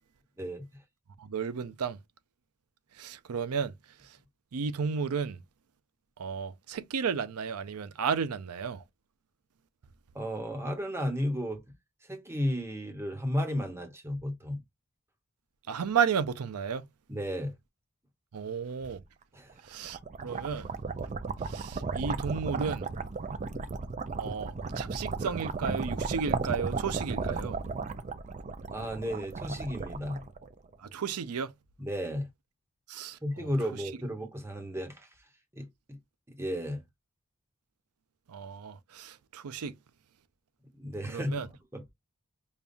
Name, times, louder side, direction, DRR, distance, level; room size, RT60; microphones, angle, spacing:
voice 1, 1.2-2.0 3.0-3.7 4.5-5.4 6.2-8.8 15.7-16.8 18.3-19.0 19.7-20.7 21.5-22.9 24.2-27.6 30.9-31.5 32.9-33.5 38.3-39.7 41.1-41.5, right 6 dB, 90° right, 0.5 m, -33 dB
voice 2, 10.1-11.6 12.0-14.6 17.1-17.5 19.3-19.6 23.3-23.7 28.7-30.3 31.8-32.3 33.2-35.1 35.5-36.0 36.3-36.8 40.7-41.4 41.7-41.9, equal, 10° right, 1.0 m, -34 dB
sound 1, 19.6-30.8, right 4 dB, 35° right, 0.4 m, -35 dB
5.2 x 2.3 x 2.5 m
head